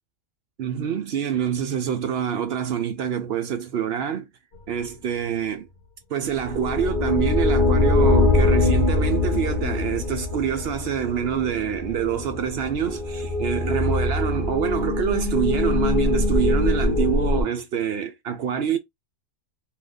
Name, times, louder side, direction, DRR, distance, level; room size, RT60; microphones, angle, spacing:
voice 1, 0.6-4.3 4.7-5.7 6.1-18.8, right 8 dB, 65° right, 0.7 m, -26 dB
sound 1, 6.3-17.4, left 2 dB, 45° left, 0.9 m, -23 dB
2.8 x 2.4 x 3.6 m
omnidirectional pair, 1.3 m